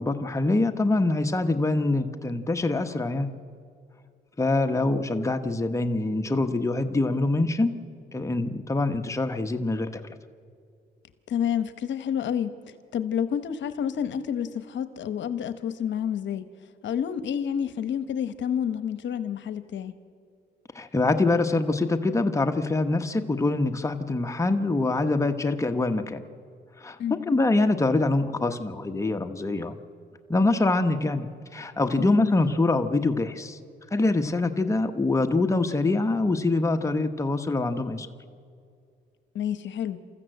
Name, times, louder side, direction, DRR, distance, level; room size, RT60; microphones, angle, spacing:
voice 1, 0.0-3.3 4.4-7.7 8.1-10.1 20.7-26.2 26.8-29.8 30.3-33.6 33.9-38.1, left 2 dB, 15° left, 6 dB, 1.1 m, -24 dB
voice 2, 11.3-12.5 12.9-16.5 16.8-20.0 27.0-27.3 32.0-32.4 39.3-40.0, left 8 dB, 65° left, 11 dB, 1.0 m, -29 dB
28.0 x 14.0 x 8.0 m, 2.3 s
cardioid pair, 90°, 20 cm